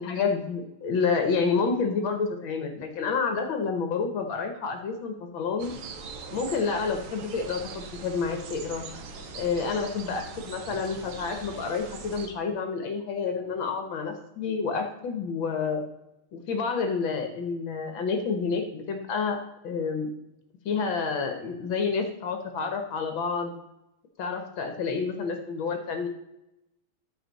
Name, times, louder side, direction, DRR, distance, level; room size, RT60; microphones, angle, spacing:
voice 1, 0.0-5.7 6.3-8.8 9.3-15.8 16.3-19.4 19.6-20.1 20.6-23.5 24.2-26.1, left 5 dB, 70° left, 6 dB, 1.7 m, -29 dB
sound 1, 5.6-12.3, right 5 dB, 70° right, 1.8 m, -41 dB
13.5 x 5.0 x 4.0 m, 0.89 s
omnidirectional pair, 2.4 m